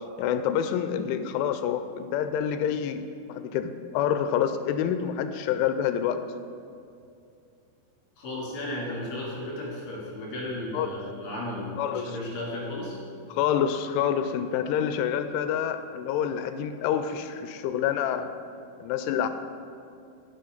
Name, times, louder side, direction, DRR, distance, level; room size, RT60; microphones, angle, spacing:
voice 1, 0.2-6.2 10.7-11.0 11.8-12.2 13.3-18.3 18.8-19.3, left 9 dB, 90° left, 10 dB, 3.0 m, -27 dB
voice 2, 8.2-13.0, left 1 dB, 65° left, -6 dB, 4.6 m, -34 dB
15.0 x 5.8 x 3.8 m, 2.5 s
omnidirectional pair, 5.4 m